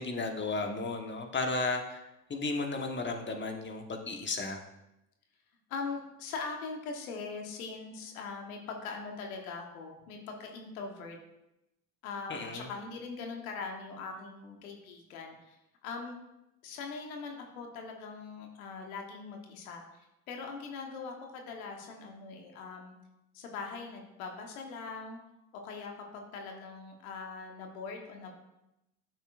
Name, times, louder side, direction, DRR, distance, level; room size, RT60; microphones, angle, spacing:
voice 1, 0.0-4.6 12.3-12.7, left 3 dB, 25° left, 4 dB, 1.3 m, -34 dB
voice 2, 5.7-11.2 12.0-15.6 15.8-16.2 16.6-23.0 23.3-25.2 25.5-28.3, left 4 dB, 85° left, 2 dB, 1.2 m, -41 dB
9.8 x 7.2 x 2.5 m, 0.89 s
hypercardioid pair, 65°, 41 cm